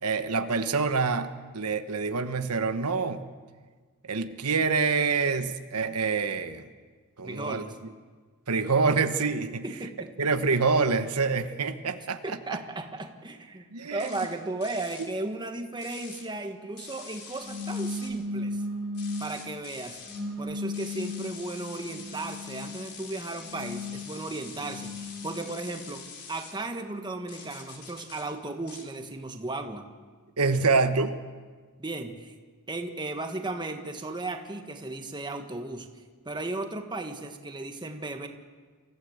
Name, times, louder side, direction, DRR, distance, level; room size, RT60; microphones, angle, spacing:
voice 1, 0.0-3.2 4.0-6.7 7.2-7.6 8.5-9.6 10.2-12.6 13.7-14.1 30.4-31.2, right 4 dB, 85° right, 9 dB, 1.1 m, -26 dB
voice 2, 7.2-7.7 9.6-10.1 12.2-18.6 19.2-20.0 20.4-29.9 31.8-32.3 32.7-35.9 36.2-38.3, right 2 dB, 20° right, 5 dB, 1.5 m, -35 dB
sound 1, 14.0-14.3 14.6-15.1 15.8-16.2 16.8-18.1 18.9-20.2 20.7-26.5 27.3-28.2 28.7-28.9, left 5 dB, 50° left, 3.7 m, -45 dB
sound 2, 17.4-19.4 20.0-22.7 23.3-25.6, left 2 dB, ahead, 3.5 m, -36 dB
25.5 x 15.5 x 8.0 m, 1.5 s
head